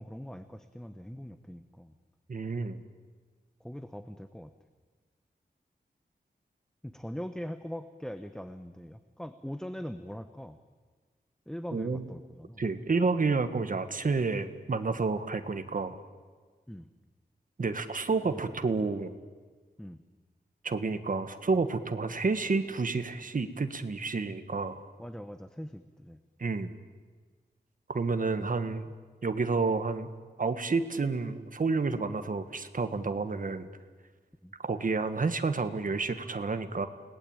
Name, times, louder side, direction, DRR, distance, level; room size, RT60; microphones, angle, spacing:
voice 1, 0.0-1.9 3.6-4.5 6.8-10.6 11.5-12.6 16.7-16.9 18.2-18.4 19.8-20.0 25.0-26.2 34.4-34.5, equal, 5° left, 9 dB, 1.0 m, -41 dB
voice 2, 2.3-2.8 11.7-12.1 12.6-16.0 17.6-19.1 20.6-24.8 26.4-26.7 27.9-28.9 29.2-30.1 30.4-33.7 34.6-36.9, right 4 dB, 55° right, 8 dB, 1.6 m, -30 dB
29.5 x 19.0 x 9.0 m, 1.5 s
wide cardioid pair, 110°, 17 cm